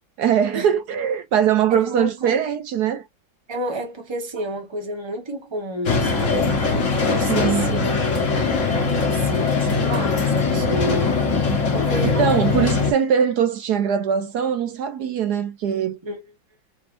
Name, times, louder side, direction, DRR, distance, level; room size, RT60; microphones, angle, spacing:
voice 1, 0.2-3.0 7.3-8.0 12.0-16.0, right 8 dB, 70° right, 0.9 m, -21 dB
voice 2, 1.7-2.4 3.5-6.5 7.0-8.3 9.1-11.2 11.7-12.2 12.6-12.7 16.0-16.2, equal, 20° right, 0.9 m, -30 dB
sound 1, 5.9-12.9, left 4 dB, 45° left, 1.1 m, -21 dB
4.2 x 3.3 x 2.6 m
omnidirectional pair, 2.3 m